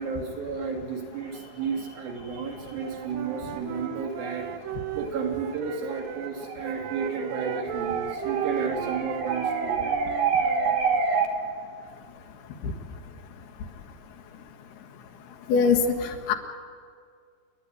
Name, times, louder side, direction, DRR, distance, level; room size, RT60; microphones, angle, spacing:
voice 1, 0.0-11.3, right 5 dB, 60° right, -1 dB, 4.5 m, -29 dB
Wind instrument woodwind instrument, 2.6-6.3 6.6-11.0, right 11 dB, 85° right, 2.0 m, -36 dB
voice 2, 15.5-16.3, left 5 dB, 75° left, 4 dB, 3.3 m, -22 dB
29.5 x 10.5 x 10.0 m, 2.1 s
omnidirectional pair, 4.7 m